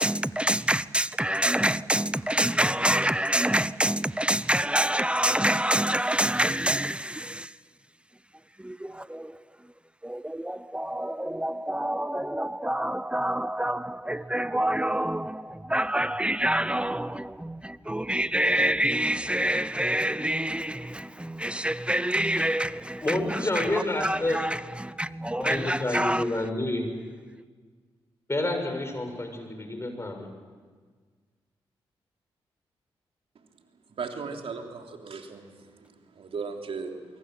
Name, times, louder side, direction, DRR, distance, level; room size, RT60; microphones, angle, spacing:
voice 1, 0.0-7.5 8.6-9.4 10.0-26.2, right 1 dB, 10° right, 0.9 m, -27 dB
voice 2, 23.0-24.4 25.3-26.8 28.3-30.3, left 2 dB, 25° left, 6.2 m, -29 dB
voice 3, 34.0-35.5 36.2-36.9, right 5 dB, 65° right, 3.5 m, -36 dB
23.5 x 23.5 x 7.7 m
supercardioid pair, 45°, 10 cm